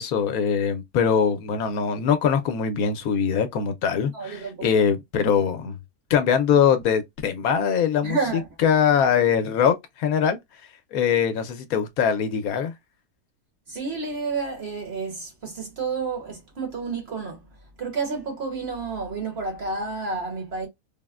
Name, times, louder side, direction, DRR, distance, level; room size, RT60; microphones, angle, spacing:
voice 1, 0.0-5.8 6.1-8.2 8.6-10.4 10.9-12.7, left 7 dB, 75° left, 1.0 m, -22 dB
voice 2, 4.1-4.6 8.0-8.5 13.7-17.4 17.8-20.7, right 4 dB, 45° right, 1.2 m, -30 dB
3.5 x 2.1 x 2.2 m
omnidirectional pair, 1.6 m